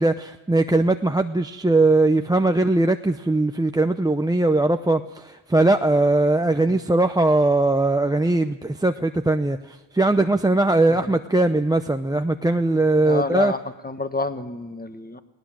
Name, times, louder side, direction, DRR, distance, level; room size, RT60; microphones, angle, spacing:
voice 1, 0.0-13.5, right 2 dB, 10° right, 6 dB, 0.7 m, -20 dB
voice 2, 13.0-15.2, left 2 dB, 20° left, 9 dB, 1.5 m, -29 dB
19.0 x 18.5 x 7.5 m, 1.2 s
cardioid pair, 85°, 50 cm